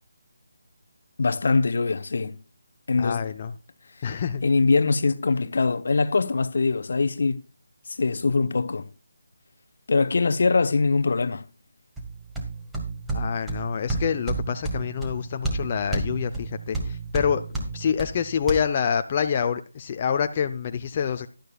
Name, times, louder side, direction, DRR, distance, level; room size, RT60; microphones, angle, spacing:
voice 1, 1.2-2.4 2.9-3.2 4.4-7.4 8.0-8.9 9.9-11.5, left 4 dB, 60° left, 0.8 m, -22 dB
voice 2, 3.0-3.5 4.0-4.4 13.1-21.3, left 7 dB, 30° left, 0.6 m, -27 dB
sound 1, 12.0-18.6, right 3 dB, 5° right, 1.8 m, -31 dB
12.0 x 12.0 x 2.4 m
figure-of-eight pair, 160°, 0 cm